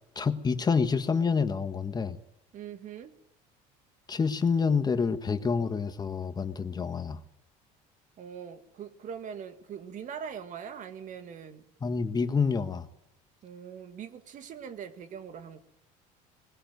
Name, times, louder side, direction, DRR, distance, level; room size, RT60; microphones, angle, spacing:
voice 1, 0.1-2.2 4.1-7.2 11.8-12.9, left 5 dB, 25° left, 10 dB, 1.5 m, -27 dB
voice 2, 2.5-3.1 8.2-11.6 13.4-15.6, right 7 dB, 50° right, 10 dB, 1.9 m, -42 dB
20.0 x 17.0 x 9.4 m, 0.80 s
supercardioid pair, 105°, 16 cm